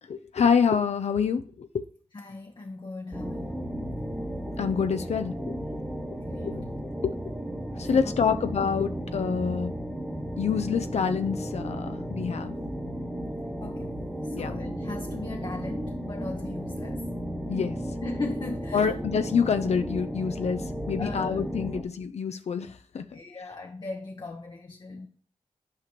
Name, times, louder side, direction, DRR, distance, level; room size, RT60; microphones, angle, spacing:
voice 1, 0.1-1.8 4.6-5.5 6.1-6.2 6.4-6.6 7.0-7.1 7.8-9.7 10.4-12.5 14.3-14.6 17.5-17.8 18.7-23.0, left 6 dB, 70° left, 0.5 m, -27 dB
voice 2, 2.1-3.7 6.3-6.6 7.9-8.2 10.1-10.2 13.6-17.1 18.0-19.0 21.0-21.4 23.1-25.1, left 3 dB, 40° left, 0.8 m, -38 dB
sound 1, 3.1-21.8, equal, 5° right, 1.4 m, -34 dB
8.6 x 5.0 x 3.0 m
cardioid pair, 50°, 12 cm